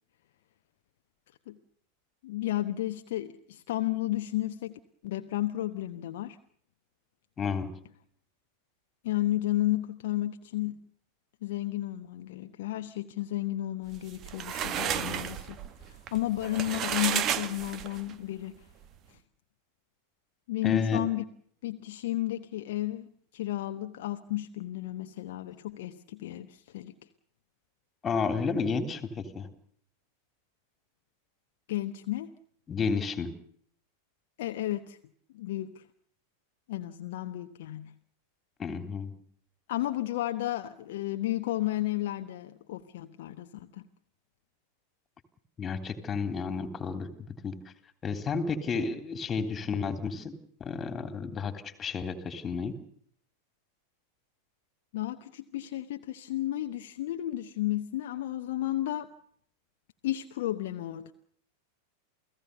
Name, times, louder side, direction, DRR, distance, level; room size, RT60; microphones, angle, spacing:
voice 1, 2.2-6.4 9.0-10.8 11.4-15.6 15.8-18.6 19.1-19.2 20.5-21.2 21.6-26.9 31.7-32.3 34.4-35.0 35.3-35.8 36.7-37.9 39.7-43.9 54.9-59.1 60.0-61.1, left 15 dB, 55° left, 1.1 m, -33 dB
voice 2, 7.4-7.7 20.6-21.0 28.0-29.5 32.7-33.3 38.6-39.1 45.6-47.6 48.0-50.3 50.6-52.7, left 5 dB, 20° left, 3.3 m, -31 dB
sound 1, 14.0-18.1, right 9 dB, 35° right, 1.7 m, -32 dB
29.0 x 18.0 x 6.8 m
figure-of-eight pair, 90°, 0 cm